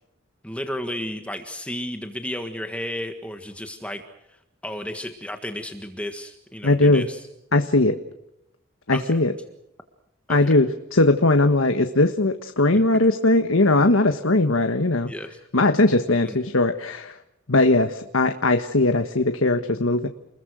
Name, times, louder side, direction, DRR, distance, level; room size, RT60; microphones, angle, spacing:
voice 1, 0.4-4.0 4.3-4.4 4.6-7.2 8.9-9.1 10.3-10.5 12.7-12.8 15.1-15.4 16.2-16.4, left 1 dB, 5° left, 6 dB, 1.6 m, -33 dB
voice 2, 6.6-7.1 7.5-8.0 8.9-9.3 10.3-15.1 15.5-17.2 17.5-20.1, left 2 dB, 90° left, 7 dB, 1.5 m, -19 dB
30.0 x 21.5 x 6.4 m, 0.87 s
head